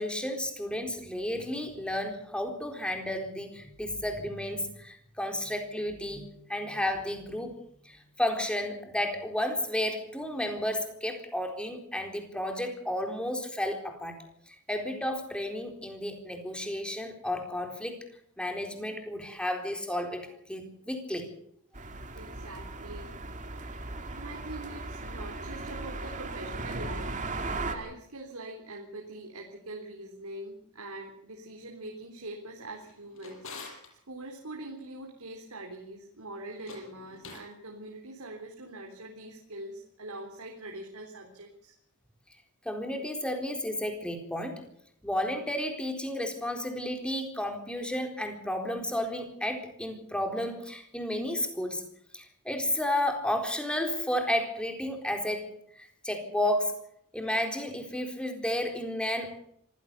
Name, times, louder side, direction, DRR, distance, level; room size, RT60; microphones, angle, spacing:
voice 1, 0.0-7.6 7.8-14.2 14.5-18.0 18.4-21.3 42.6-44.6 45.0-51.8 52.1-55.5 55.8-56.8 57.1-59.4, left 1 dB, 5° left, 4 dB, 4.0 m, -32 dB
sound 1, 21.7-27.8, right 2 dB, 35° right, 2.6 m, -37 dB
voice 2, 22.1-27.3 27.6-33.8 34.1-41.7, right 2 dB, 85° right, 1 dB, 3.7 m, -43 dB
Drawer open or close, 32.7-33.9 36.5-37.5, left 4 dB, 65° left, 6.4 m, -46 dB
26.0 x 16.0 x 6.8 m, 0.70 s
head